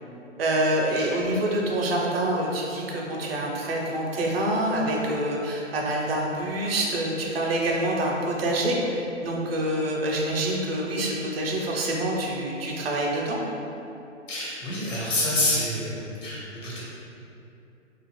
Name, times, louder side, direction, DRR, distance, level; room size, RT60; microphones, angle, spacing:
voice 1, 0.4-13.4, right 1 dB, 50° right, -2 dB, 0.6 m, -26 dB
voice 2, 14.3-16.8, left 1 dB, 70° left, -7 dB, 1.2 m, -27 dB
2.5 x 2.4 x 3.0 m, 2.8 s
hypercardioid pair, 140°, 38 cm